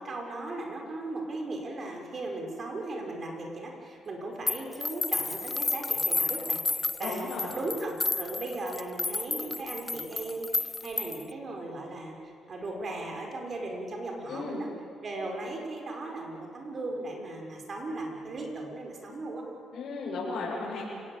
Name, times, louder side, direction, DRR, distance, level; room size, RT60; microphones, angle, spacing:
voice 1, 0.0-7.3 7.5-14.7 15.0-19.4, right 2 dB, 45° right, 1 dB, 5.9 m, -37 dB
sound 1, 4.5-11.3, left 3 dB, 25° left, 0.5 m, -31 dB
voice 2, 7.0-7.6 14.3-14.6 19.7-20.8, left 3 dB, 65° left, -6 dB, 7.0 m, -35 dB
29.5 x 18.5 x 9.0 m, 2.6 s
cardioid pair, 90°, 0 cm